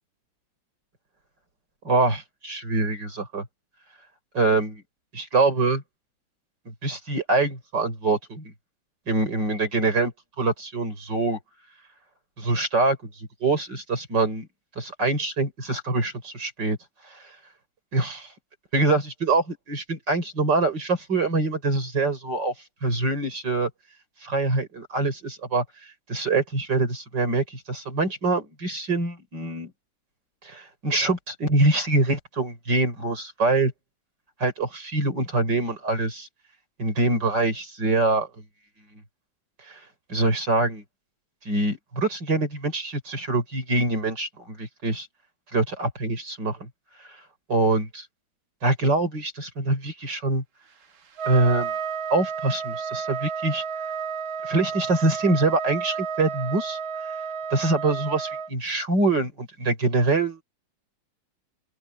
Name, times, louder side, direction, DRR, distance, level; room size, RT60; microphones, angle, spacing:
voice 1, 1.8-3.5 4.3-4.8 5.1-5.8 6.7-8.5 9.1-10.1 10.4-11.4 12.4-14.5 14.8-16.8 17.1-17.2 17.9-18.3 18.7-22.5 22.8-23.7 24.2-25.6 26.1-29.7 30.4-33.7 34.4-36.3 36.8-38.3 39.7-39.8 40.1-40.8 41.5-45.1 45.5-46.7 47.5-48.1 48.6-50.4 51.2-51.7 52.1-53.6 54.4-56.8 57.5-60.4, right 2 dB, 55° right, 6.3 m, -24 dB
Trumpet, 51.2-58.5, right 6 dB, 75° right, 2.4 m, -31 dB
open air
omnidirectional pair, 2.2 m